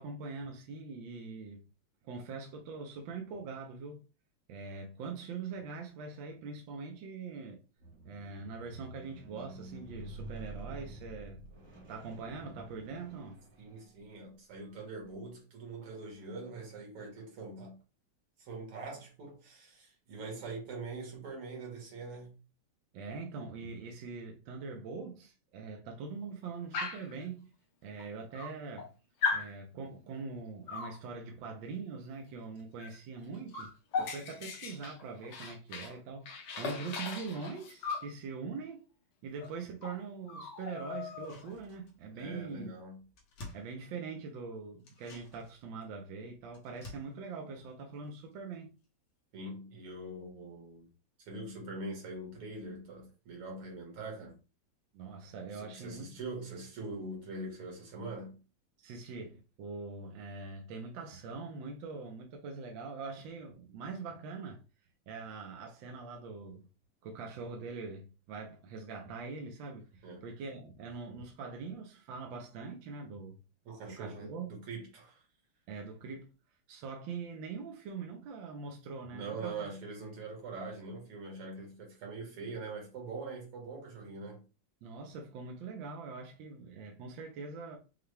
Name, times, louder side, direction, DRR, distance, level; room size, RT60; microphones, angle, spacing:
voice 1, 0.0-1.6 2.0-4.0 4.5-7.6 8.0-11.4 11.9-13.4 22.9-27.5 27.8-28.9 29.3-33.7 34.0-38.8 39.2-42.7 43.5-48.7 54.9-56.2 58.8-64.6 65.1-66.7 67.0-73.4 73.9-74.6 75.7-76.3 76.7-79.7 84.8-87.8, right 4 dB, 70° right, 1.3 m, -43 dB
Squeak, 7.8-14.1 14.9-15.0, right 2 dB, 50° right, 1.2 m, -48 dB
voice 2, 13.6-17.8 18.4-22.4 42.1-43.0 49.3-50.9 51.3-54.4 55.5-58.4 70.0-70.3 73.7-75.2 79.1-84.4, right 3 dB, 85° right, 2.5 m, -43 dB
Dog, 26.7-27.1 28.0-28.1 28.3-28.9 29.2-29.5 30.7-31.0 32.8-33.0 33.2-36.0 36.3-38.1 39.4-39.5 39.8-40.0 40.3-41.5, left 5 dB, 60° left, 1.2 m, -37 dB
sound 1, 41.0-42.2 42.5-42.6 42.8-44.4 44.8-48.5 48.8-48.9, left 2 dB, 80° left, 2.0 m, -53 dB
5.7 x 2.2 x 3.2 m
omnidirectional pair, 2.4 m